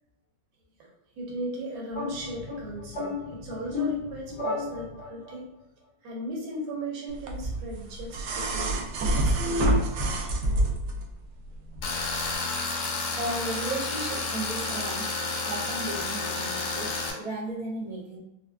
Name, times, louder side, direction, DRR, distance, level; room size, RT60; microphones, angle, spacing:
voice 1, 1.2-5.4 6.0-8.8 9.1-9.7 10.0-10.1, right 1 dB, 70° right, -2 dB, 1.6 m, -37 dB
sound 1, 1.9-5.4, left 4 dB, 50° left, 1.9 m, -34 dB
sound 2, 7.3-11.0 12.3-12.4, right 1 dB, 85° right, 0.9 m, -26 dB
Tools, 11.8-17.1, left 3 dB, 85° left, 1.6 m, -31 dB
voice 2, 13.1-15.1 15.4-18.2, right 1 dB, 25° right, -7 dB, 0.9 m, -35 dB
4.3 x 2.2 x 2.3 m, 0.85 s
omnidirectional pair, 2.3 m